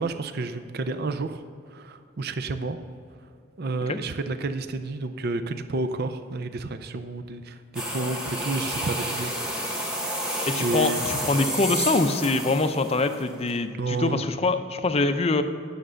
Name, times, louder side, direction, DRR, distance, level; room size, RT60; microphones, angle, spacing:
voice 1, 0.0-1.4 1.7-2.8 3.6-10.1 10.6-11.0 13.8-14.2, right 3 dB, 50° right, 9 dB, 0.5 m, -30 dB
sound 1, 7.7-13.5, equal, 5° right, 1.2 m, -30 dB
voice 2, 10.5-15.4, left 3 dB, 30° left, 9 dB, 0.5 m, -24 dB
10.0 x 6.7 x 6.3 m, 2.3 s
head